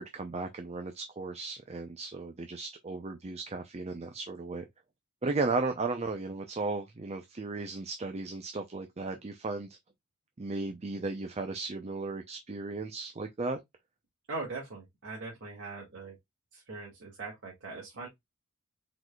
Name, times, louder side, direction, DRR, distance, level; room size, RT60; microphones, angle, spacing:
voice 1, 0.0-4.7 5.2-9.7 10.4-13.6, right 3 dB, 30° right, 0.6 m, -35 dB
voice 2, 14.3-16.2 16.5-18.1, right 3 dB, 55° right, 2.0 m, -41 dB
4.7 x 4.0 x 2.3 m
head